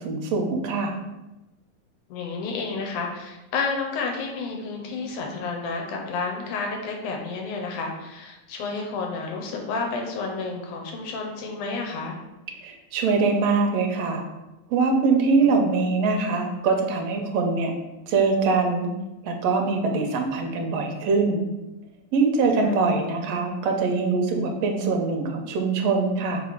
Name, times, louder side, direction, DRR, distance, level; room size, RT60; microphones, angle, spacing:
voice 1, 0.0-0.9 12.6-14.2 14.7-17.7 18.1-18.9 19.2-21.4 22.1-26.4, right 4 dB, 70° right, 2 dB, 1.7 m, -23 dB
voice 2, 2.1-12.2 15.4-15.7 22.5-22.9, left 4 dB, 90° left, 1 dB, 2.4 m, -31 dB
4.9 x 4.0 x 4.7 m, 1.0 s
omnidirectional pair, 3.4 m